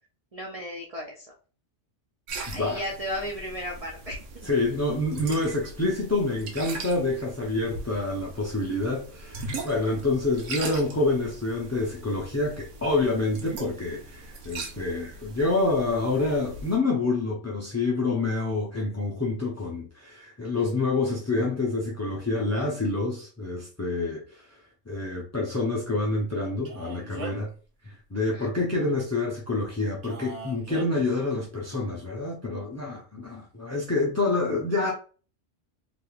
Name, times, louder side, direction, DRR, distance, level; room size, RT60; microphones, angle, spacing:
voice 1, 0.3-1.3 2.5-4.5 28.2-28.5, equal, 45° right, 0.4 m, -35 dB
sound 1, 2.3-16.8, right 3 dB, 85° right, 1.1 m, -40 dB
voice 2, 2.5-2.8 4.4-27.5 27.8-34.9, left 2 dB, 25° left, 0.3 m, -27 dB
Male speech man speaking, 26.7-27.5 30.0-30.9, right 2 dB, 70° right, 1.2 m, -39 dB
3.3 x 3.0 x 2.3 m
omnidirectional pair, 1.2 m